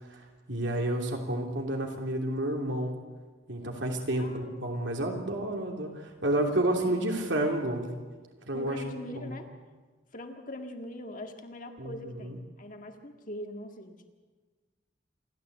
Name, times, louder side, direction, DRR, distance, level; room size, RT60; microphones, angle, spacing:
voice 1, 0.1-3.0 3.5-7.9 8.5-8.8 9.1-9.4 11.8-12.4, right 1 dB, 65° right, 2 dB, 3.0 m, -30 dB
voice 2, 4.2-4.7 6.4-7.0 8.5-9.5 10.1-14.1, left 1 dB, 40° left, 4 dB, 1.8 m, -42 dB
27.0 x 12.5 x 8.1 m, 1.4 s
head